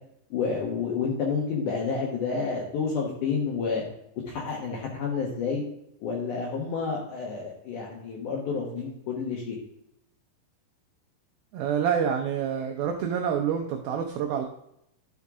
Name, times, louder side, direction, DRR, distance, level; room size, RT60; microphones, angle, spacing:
voice 1, 0.3-3.8 4.3-5.6 6.0-9.6, left 5 dB, 70° left, -1 dB, 2.0 m, -29 dB
voice 2, 11.5-14.5, right 8 dB, 80° right, 3 dB, 2.1 m, -27 dB
12.0 x 5.5 x 3.6 m, 0.79 s
omnidirectional pair, 5.1 m